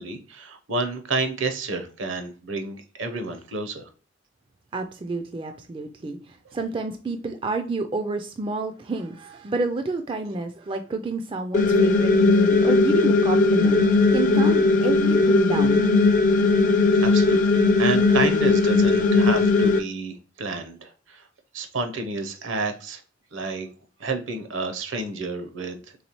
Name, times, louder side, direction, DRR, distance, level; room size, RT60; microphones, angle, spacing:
voice 1, 0.0-3.9 16.9-21.2 21.5-23.0 23.3-23.7 24.0-25.8, right 3 dB, 70° right, 0.7 m, -30 dB
voice 2, 4.7-13.8 14.1-15.8, right 3 dB, 25° right, 0.3 m, -29 dB
sound 1, 11.5-19.8, left 3 dB, 40° left, 0.5 m, -18 dB
4.0 x 3.4 x 3.0 m
head